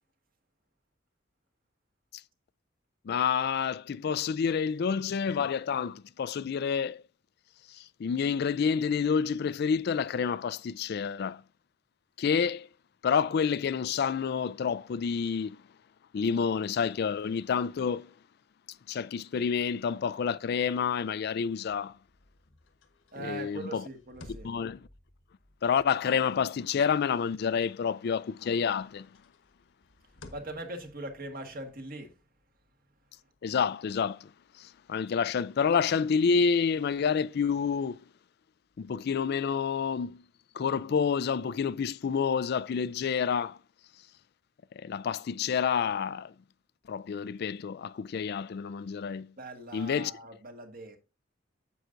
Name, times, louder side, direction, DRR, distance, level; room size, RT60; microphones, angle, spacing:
voice 1, 3.0-7.0 7.7-11.4 12.2-12.7 13.0-15.6 16.1-18.1 18.9-22.0 23.2-23.9 24.4-24.9 25.6-29.1 33.4-38.0 38.8-40.2 40.5-43.6 44.8-46.3 46.9-49.3 49.7-50.1, left 6 dB, 55° left, 0.4 m, -29 dB
sound 1, 21.7-28.0 28.4-33.8, left 1 dB, 80° left, 1.3 m, -57 dB
voice 2, 23.1-24.5 30.3-32.1 49.4-51.0, right 2 dB, 50° right, 1.5 m, -41 dB
9.4 x 7.8 x 2.5 m
head